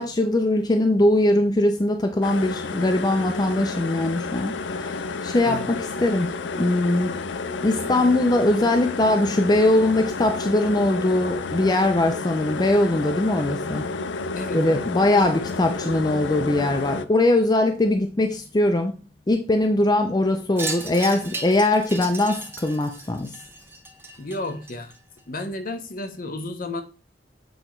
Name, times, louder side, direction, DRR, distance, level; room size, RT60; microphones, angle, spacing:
voice 1, 0.0-6.3 6.6-7.1 7.6-13.9 14.5-19.0 19.3-23.4, left 1 dB, 25° left, 0.5 m, -21 dB
sound 1, 2.2-17.0, left 4 dB, 90° left, 0.5 m, -31 dB
voice 2, 14.3-14.9 24.2-24.9 25.3-26.8, left 2 dB, 50° left, 0.9 m, -32 dB
Wind chime, 20.6-25.2, right 3 dB, 15° right, 1.0 m, -35 dB
7.8 x 3.0 x 4.4 m
head